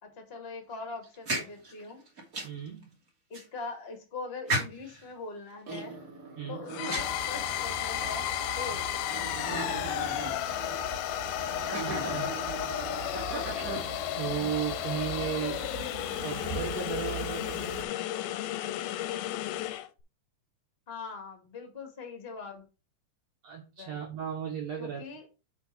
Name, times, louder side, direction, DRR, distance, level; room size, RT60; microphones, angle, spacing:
voice 1, 0.0-2.0 3.3-6.0 6.5-8.3 8.6-8.9 20.9-22.6 23.8-24.0 24.8-25.3, left 4 dB, 40° left, 0.8 m, -42 dB
sound 1, 1.0-2.7 3.3-3.4 4.5-5.0 5.6-7.7 8.4-8.5 9.1-10.7 11.4-14.1, right 2 dB, 30° right, 2.0 m, -36 dB
voice 2, 2.4-2.9 6.4-6.7 11.8-12.3 14.1-15.7 16.2-17.9 23.4-25.1, right 9 dB, 90° right, 1.4 m, -35 dB
sound 2, 6.7-19.9, left 13 dB, 80° left, 2.3 m, -33 dB
sound 3, 6.9-17.8, right 8 dB, 65° right, 2.8 m, -42 dB
7.0 x 4.2 x 6.0 m
omnidirectional pair, 4.7 m